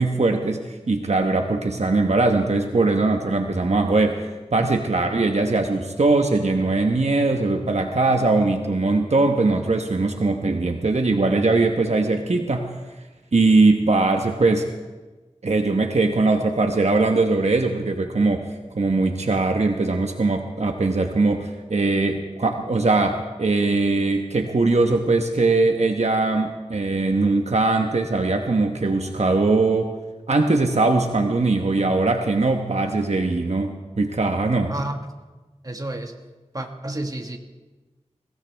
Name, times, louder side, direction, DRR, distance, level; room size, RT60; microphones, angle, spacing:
voice 1, 0.0-12.7 13.3-14.7 15.4-18.4 18.7-29.9 30.3-34.7, right 3 dB, 65° right, 4 dB, 1.1 m, -21 dB
voice 2, 34.7-35.1 35.6-36.1 36.5-37.4, right 1 dB, 30° right, 3 dB, 1.7 m, -31 dB
22.0 x 17.0 x 3.5 m, 1.2 s
wide cardioid pair, 60°, 12 cm